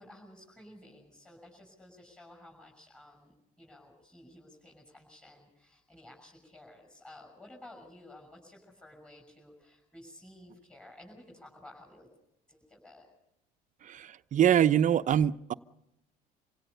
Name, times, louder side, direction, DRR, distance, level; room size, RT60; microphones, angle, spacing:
voice 1, 0.0-12.1 12.5-13.1, left 1 dB, 5° left, -2 dB, 6.8 m, -53 dB
voice 2, 13.9-15.5, right 10 dB, 45° right, 13 dB, 0.8 m, -24 dB
27.0 x 17.0 x 6.8 m, 0.86 s
supercardioid pair, 95°, 18 cm